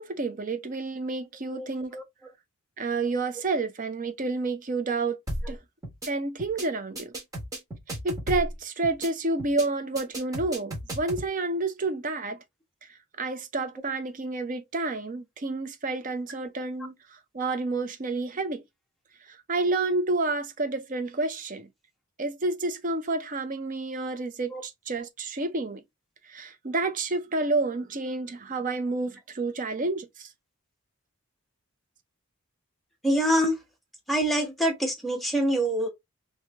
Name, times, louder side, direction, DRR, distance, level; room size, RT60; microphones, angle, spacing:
voice 1, 0.0-2.0 2.8-5.2 5.5-5.6 6.1-7.1 7.9-12.4 13.2-16.9 17.3-18.6 19.3-21.7 22.2-25.8 26.3-30.3, right 3 dB, 35° right, 0.6 m, -29 dB
sound 1, 5.3-5.5 5.8-6.1 6.4-6.6 6.9-8.5 8.8-9.1 9.4-9.6 9.9-11.3, right 1 dB, 15° right, 1.3 m, -34 dB
voice 2, 33.0-33.6 34.1-35.9, equal, ahead, 0.9 m, -25 dB
3.1 x 2.7 x 3.4 m
head